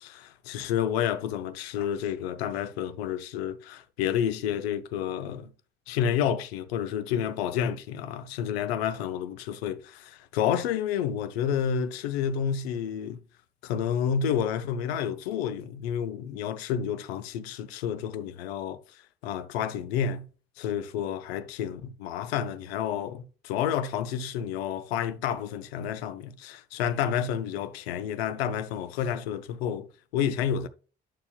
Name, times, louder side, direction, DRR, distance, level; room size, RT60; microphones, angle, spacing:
voice 1, 0.0-5.5 5.9-13.2 13.6-18.8 19.2-20.3 20.6-30.7, left 8 dB, 75° left, 0.6 m, -30 dB
9.2 x 6.8 x 2.3 m
figure-of-eight pair, 45°, 32 cm